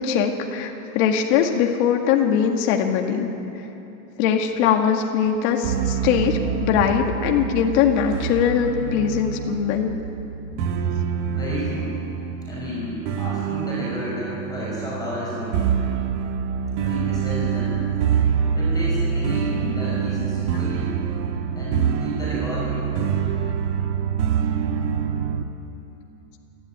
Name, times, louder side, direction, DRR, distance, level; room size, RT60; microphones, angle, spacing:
voice 1, 0.0-3.3 4.2-9.9, left 8 dB, 45° left, 3 dB, 1.9 m, -21 dB
sound 1, 5.6-25.4, right 7 dB, 50° right, 1.5 m, -26 dB
voice 2, 11.3-11.9 12.4-15.6 16.8-17.8 18.5-20.9 21.5-23.1, left 1 dB, 10° left, -7 dB, 6.3 m, -31 dB
29.0 x 12.5 x 9.3 m, 2.9 s
supercardioid pair, 165°, 46 cm